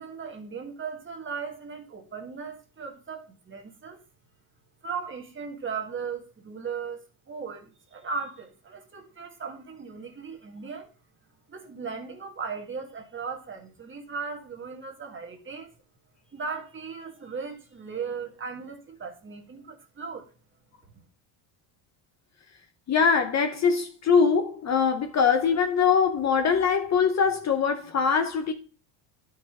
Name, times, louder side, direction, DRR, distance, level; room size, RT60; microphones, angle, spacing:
voice 1, 0.0-4.0 4.8-10.9 11.5-15.7 16.3-20.3, right 5 dB, 25° right, 1.6 m, -37 dB
voice 2, 22.9-28.5, left 6 dB, 35° left, 0.8 m, -22 dB
10.5 x 5.0 x 3.6 m
cardioid pair, 135°, 49 cm